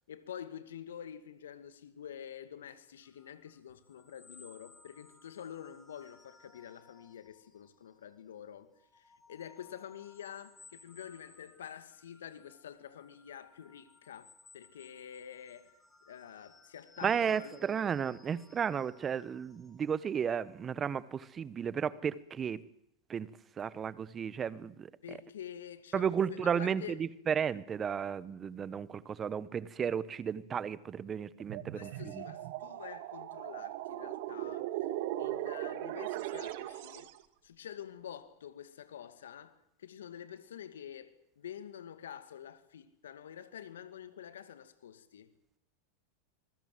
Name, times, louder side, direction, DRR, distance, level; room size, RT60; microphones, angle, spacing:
voice 1, 0.1-9.0 9.3-15.7 16.1-17.7 25.0-27.0 31.7-37.1 37.4-45.3, left 9 dB, 80° left, 2.2 m, -48 dB
sound 1, 3.0-8.2 8.6-20.9, left 3 dB, 15° left, 5.3 m, -61 dB
voice 2, 17.0-22.6 23.1-23.3 23.6-24.9 25.9-32.2, right 7 dB, 25° right, 1.4 m, -33 dB
sound 2, 31.4-37.2, right 15 dB, 60° right, 2.0 m, -38 dB
27.0 x 21.0 x 7.9 m
hypercardioid pair, 100°, 0 cm